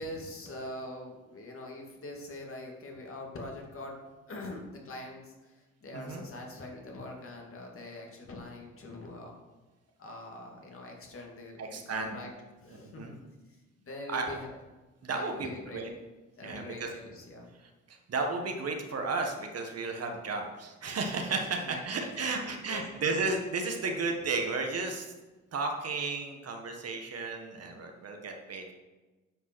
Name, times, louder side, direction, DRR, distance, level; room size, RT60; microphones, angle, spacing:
voice 1, 0.0-9.4 10.0-11.6 11.9-13.2 13.5-14.6 15.1-15.8 16.4-17.5 21.7-22.8, left 1 dB, 45° left, 0 dB, 2.6 m, -43 dB
voice 2, 5.9-6.2 11.6-12.2 12.7-13.1 14.1-14.3 15.0-15.9 16.4-16.9 17.5-25.1 25.5-28.7, right 3 dB, 55° right, 3 dB, 1.7 m, -34 dB
9.4 x 5.4 x 6.2 m, 1.2 s
cardioid pair, 90°, 30 cm